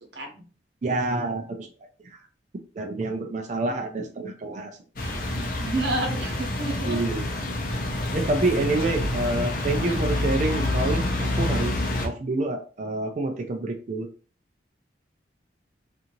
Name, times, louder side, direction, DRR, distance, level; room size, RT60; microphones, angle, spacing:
voice 1, 0.1-0.5 5.6-7.0, right 2 dB, 65° right, 1 dB, 0.9 m, -29 dB
voice 2, 0.8-1.7 2.0-2.2 2.8-4.7 6.8-7.2 8.1-14.1, right 2 dB, 40° right, 4 dB, 0.4 m, -27 dB
sound 1, 5.0-12.1, left 1 dB, 50° left, 0.6 m, -27 dB
2.7 x 2.5 x 2.8 m, 0.37 s
head